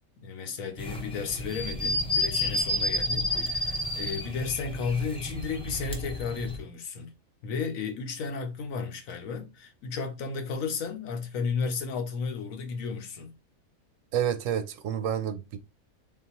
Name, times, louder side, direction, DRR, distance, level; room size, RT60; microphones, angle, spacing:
voice 1, 0.2-7.1 7.4-13.3, left 5 dB, 80° left, 1.2 m, -33 dB
sound 1, 0.8-6.6, left 1 dB, 10° left, 0.4 m, -31 dB
voice 2, 14.1-15.6, right 9 dB, 75° right, 0.9 m, -29 dB
3.8 x 3.8 x 2.9 m
omnidirectional pair, 1.4 m